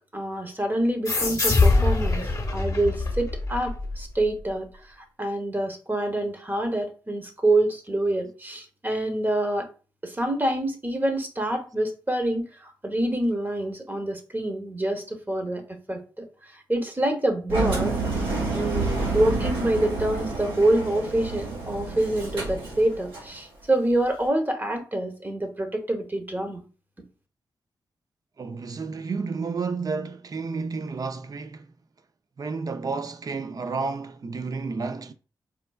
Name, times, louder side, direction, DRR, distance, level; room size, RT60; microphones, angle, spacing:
voice 1, 0.1-2.3 2.5-4.7 5.0-9.7 10.0-15.6 15.9-16.3 16.7-18.2 18.5-26.7, right 1 dB, 20° right, 0.9 m, -26 dB
sound 1, 1.1-4.3, left 3 dB, 40° left, 0.9 m, -23 dB
Engine, 17.5-23.3, right 3 dB, 85° right, 1.4 m, -29 dB
voice 2, 28.4-31.7 32.4-35.1, right 4 dB, 45° right, 0.4 m, -31 dB
4.5 x 2.2 x 2.3 m
supercardioid pair, 45°, 9 cm